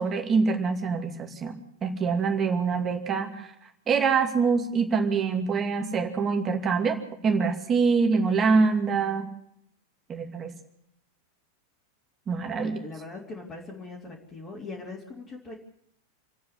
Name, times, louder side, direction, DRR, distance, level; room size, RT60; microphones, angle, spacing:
voice 1, 0.0-3.5 3.9-7.0 7.2-9.3 10.1-10.5 12.3-12.8, right 5 dB, 25° right, 4 dB, 2.5 m, -25 dB
voice 2, 12.6-15.5, left 3 dB, 20° left, -5 dB, 3.8 m, -41 dB
28.0 x 9.5 x 9.7 m, 0.75 s
figure-of-eight pair, 90°, 0 cm